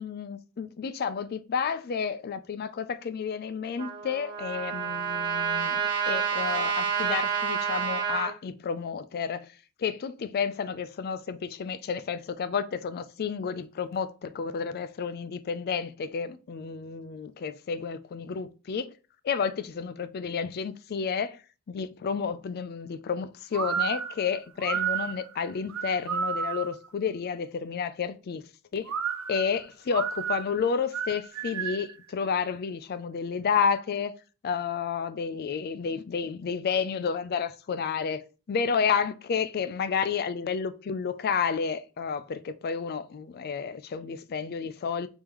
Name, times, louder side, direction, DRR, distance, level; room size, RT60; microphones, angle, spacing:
voice 1, 0.0-5.8 6.1-9.5 9.8-18.9 19.2-21.4 21.7-28.4 28.7-28.9 29.3-34.1 34.4-38.2 38.5-45.1, left 6 dB, 45° left, 0.4 m, -31 dB
Trumpet, 3.8-8.3, right 7 dB, 20° right, 1.4 m, -29 dB
sound 1, 23.5-26.9 28.8-32.0, right 7 dB, 75° right, 0.6 m, -32 dB
5.0 x 3.6 x 3.0 m
head